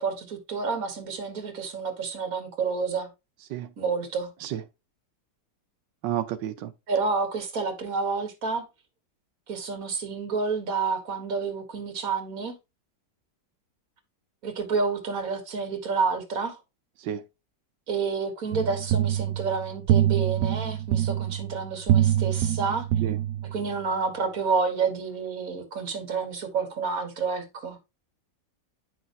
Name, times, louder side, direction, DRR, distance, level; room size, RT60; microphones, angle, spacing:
voice 1, 0.0-3.1 3.8-4.3 6.9-8.7 9.5-12.6 14.4-16.6 17.9-22.9 23.4-27.8, right 5 dB, 55° right, 1.9 m, -29 dB
voice 2, 6.0-6.7 17.0-17.2 23.0-23.2, right 11 dB, 90° right, 1.3 m, -30 dB
sound 1, 18.5-23.8, right 11 dB, 70° right, 0.8 m, -25 dB
9.2 x 5.9 x 2.6 m
omnidirectional pair, 1.9 m